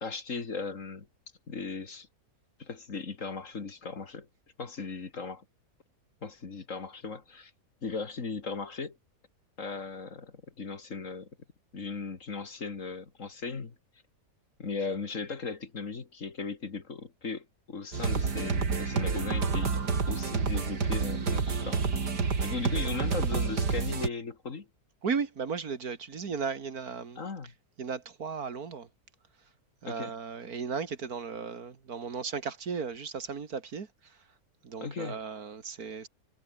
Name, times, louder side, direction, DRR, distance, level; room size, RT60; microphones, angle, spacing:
voice 1, 0.0-1.1 1.5-2.1 2.6-4.3 4.6-5.4 6.2-7.5 7.8-9.0 9.6-11.3 11.7-13.8 14.6-19.7 20.1-22.1 22.4-24.7 27.2-27.5 29.9-30.1 34.8-35.2, left 4 dB, 50° left, 2.4 m, -37 dB
sound 1, 17.9-24.1, right 5 dB, 90° right, 3.2 m, -29 dB
voice 2, 25.0-27.2 27.8-28.9 29.8-34.2 34.6-36.1, right 5 dB, 65° right, 2.4 m, -35 dB
omnidirectional pair, 1.7 m